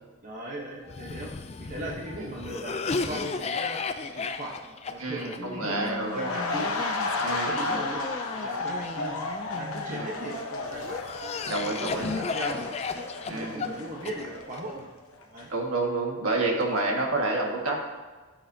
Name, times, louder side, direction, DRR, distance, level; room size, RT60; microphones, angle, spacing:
voice 1, 0.2-1.3 1.6-3.8 4.1-4.6 4.9-6.7 7.3-8.0 8.3-9.2 9.5-11.0 11.4-12.6 13.2-14.9 15.3-15.5, right 1 dB, 35° right, -2 dB, 1.1 m, -38 dB
Cough, 0.9-10.1 10.7-14.6, left 4 dB, 30° left, 0.4 m, -35 dB
voice 2, 5.0-6.4 7.2-7.8 9.9-10.1 11.5-12.1 13.3-13.7 15.5-17.8, right 2 dB, 70° right, 0 dB, 1.7 m, -29 dB
sound 1, 6.0-14.9 15.2-15.4, left 3 dB, 75° left, 1.0 m, -33 dB
13.5 x 7.7 x 2.8 m, 1.3 s
head